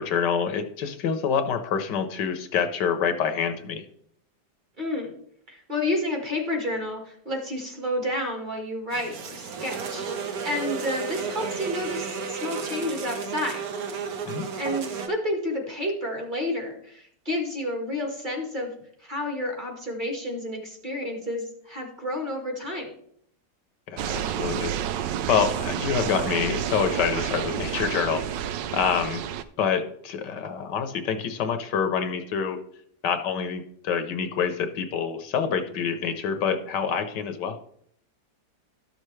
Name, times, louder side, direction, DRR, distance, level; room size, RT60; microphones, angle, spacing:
voice 1, 0.0-3.8 14.3-14.5 23.9-28.2 28.7-29.2 29.6-32.6 33.0-37.6, left 7 dB, 75° left, 8 dB, 1.4 m, -27 dB
voice 2, 4.8-5.2 5.5-13.6 14.6-18.7 19.0-23.0, left 1 dB, 30° right, 1 dB, 1.6 m, -30 dB
sound 1, 8.9-15.1, right 5 dB, 60° right, 1.2 m, -33 dB
sound 2, 24.0-29.4, right 10 dB, 80° right, 1.2 m, -30 dB
12.5 x 6.6 x 3.2 m, 0.66 s
omnidirectional pair, 1.9 m